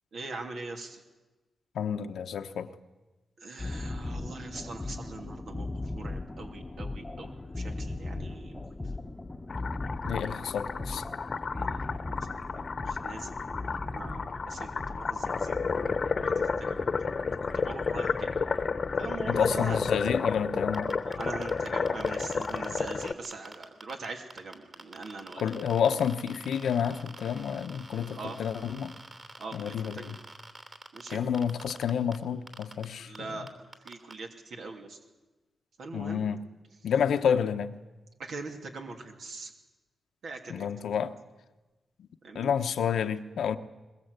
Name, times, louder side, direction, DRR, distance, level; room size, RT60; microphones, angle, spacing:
voice 1, 0.1-1.0 3.4-8.6 11.5-11.8 12.3-13.3 13.9-14.7 15.0-16.8 17.5-18.3 19.0-19.8 21.0-25.6 28.1-28.4 29.4-30.2 30.9-31.2 33.0-33.5 33.8-35.0 35.8-36.3 38.2-39.5 40.2-40.7 42.2-42.5, right 3 dB, 75° right, 2.8 m, -42 dB
voice 2, 1.7-2.7 10.1-11.0 19.3-20.9 25.4-29.0 29.5-30.2 31.1-33.5 35.9-36.4 36.8-37.8 40.5-41.2 42.3-43.6, left 8 dB, 90° left, 1.1 m, -29 dB
sound 1, 3.6-20.2, left 2 dB, 20° left, 1.0 m, -39 dB
sound 2, 9.5-23.1, left 5 dB, 50° left, 1.1 m, -31 dB
sound 3, 20.7-24.1 24.3-32.2 32.5-32.8 33.1-33.2 33.5-34.1, right 2 dB, 35° right, 3.1 m, -46 dB
22.0 x 21.0 x 8.2 m
cardioid pair, 100°, 0 cm